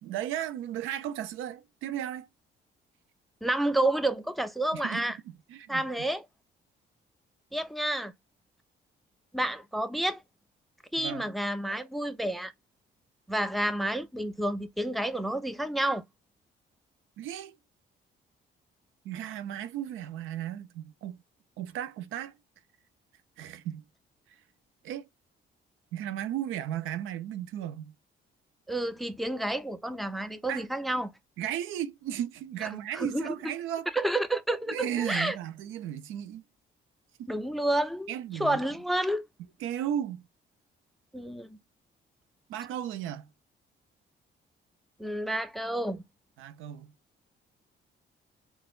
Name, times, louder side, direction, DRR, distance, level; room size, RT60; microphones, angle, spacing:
voice 1, 0.0-2.3 4.7-6.1 11.0-11.3 17.2-17.6 19.0-21.2 21.6-22.3 23.4-23.8 24.8-25.1 25.9-27.9 30.5-30.6 31.4-33.9 34.7-36.4 37.2-37.3 38.1-38.6 39.6-40.2 42.5-43.3 46.4-46.9, right 11 dB, 85° right, 0.5 m, -35 dB
voice 2, 3.4-5.2 5.7-6.2 7.5-8.1 9.3-10.2 10.9-12.5 13.3-16.0 28.7-31.1 32.6-32.7 32.9-33.3 33.9-35.4 37.3-38.1 38.4-39.2 41.1-41.6 45.0-46.0, right 1 dB, ahead, 0.4 m, -30 dB
4.1 x 2.0 x 2.3 m
cardioid pair, 90°, 20 cm